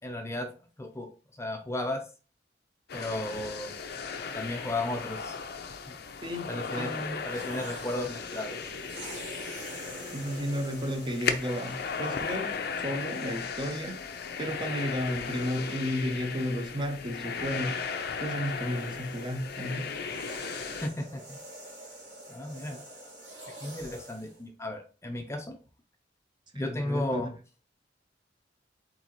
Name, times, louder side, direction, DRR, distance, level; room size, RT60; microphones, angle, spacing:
voice 1, 0.0-0.5 0.8-1.1 1.4-2.0 2.9-3.7 4.3-5.4 5.9-6.0 6.5-8.7 20.8-21.4 22.3-22.8 23.6-25.6 26.5-27.3, left 1 dB, 15° left, 0.5 m, -34 dB
sound 1, 2.9-20.9, left 5 dB, 60° left, 0.6 m, -36 dB
voice 2, 6.8-7.2 10.1-14.1 14.4-17.9 18.2-20.0 26.5-27.2, equal, 25° right, 0.7 m, -33 dB
sound 2, 7.2-12.7 13.6-13.8 17.7-24.4, right 1 dB, 75° right, 2.6 m, -47 dB
4.4 x 4.0 x 3.0 m
head